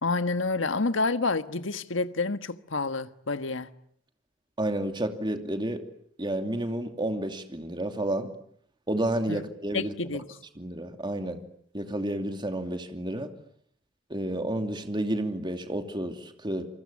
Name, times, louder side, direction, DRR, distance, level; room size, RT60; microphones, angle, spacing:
voice 1, 0.0-3.7 9.3-9.4 9.7-10.2, left 3 dB, 75° left, 1.5 m, -28 dB
voice 2, 4.6-5.8 6.2-8.3 8.9-10.2 10.6-11.4 11.7-13.3 14.1-16.7, right 1 dB, 25° right, 2.8 m, -30 dB
28.0 x 24.5 x 8.6 m
head